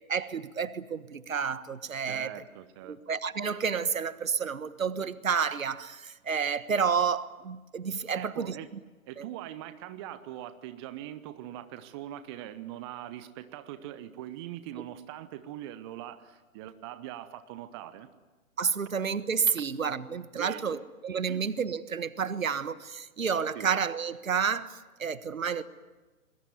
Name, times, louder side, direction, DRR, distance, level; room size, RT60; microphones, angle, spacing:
voice 1, 0.1-2.3 2.8-8.5 9.2-9.3 18.6-25.6, right 6 dB, 65° right, 1.5 m, -30 dB
voice 2, 2.0-3.0 8.1-8.7 9.1-18.1 20.3-20.8 21.3-21.5 23.5-23.7, right 12 dB, 20° right, 0.9 m, -42 dB
28.5 x 21.5 x 9.5 m
figure-of-eight pair, 130°, 43 cm